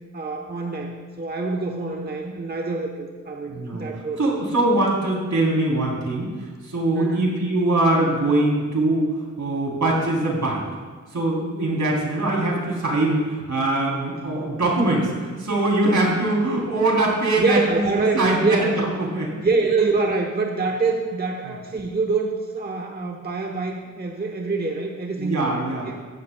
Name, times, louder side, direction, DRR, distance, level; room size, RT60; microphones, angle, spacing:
voice 1, 0.1-4.4 6.9-7.4 17.4-18.9 19.4-25.5 25.8-26.0, right 3 dB, 35° right, 2 dB, 1.0 m, -25 dB
voice 2, 3.5-3.9 4.2-6.3 6.6-9.1 9.4-10.6 11.1-17.9 18.1-19.4 25.2-25.9, right 2 dB, 80° right, -2 dB, 3.3 m, -22 dB
14.5 x 13.0 x 2.3 m, 1.5 s
wide cardioid pair, 95°, 29 cm